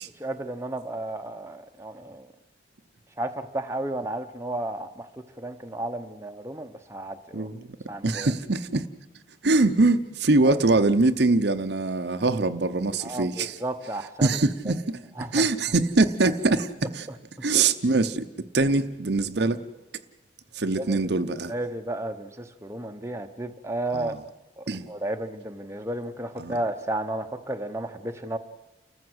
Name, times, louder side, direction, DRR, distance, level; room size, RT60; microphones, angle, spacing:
voice 1, 0.2-2.3 3.2-5.1 5.4-7.5 7.9-8.3 10.4-10.6 13.0-14.4 14.7-14.8 15.2-15.5 20.7-21.0 21.5-24.1 24.6-28.4, right 1 dB, 15° right, 0.9 m, -33 dB
voice 2, 7.3-7.7 8.0-8.9 9.4-13.6 14.2-15.0 15.3-17.1 17.4-19.6 20.5-21.5 23.9-24.2 24.7-24.9 26.4-26.5, right 3 dB, 60° right, 0.8 m, -23 dB
30.0 x 14.5 x 8.0 m
head